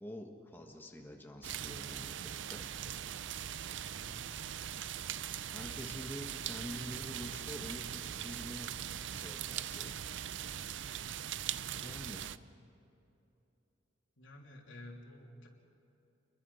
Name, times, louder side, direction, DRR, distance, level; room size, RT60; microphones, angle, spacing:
voice 1, 0.0-2.7 5.5-8.7 9.1-10.1 11.8-12.3, left 1 dB, 10° left, 2 dB, 1.5 m, -47 dB
sound 1, 1.4-12.4, right 10 dB, 70° right, 0.5 m, -41 dB
voice 2, 14.2-15.5, left 1 dB, 85° left, -1 dB, 3.2 m, -51 dB
28.5 x 22.0 x 5.7 m, 2.9 s
head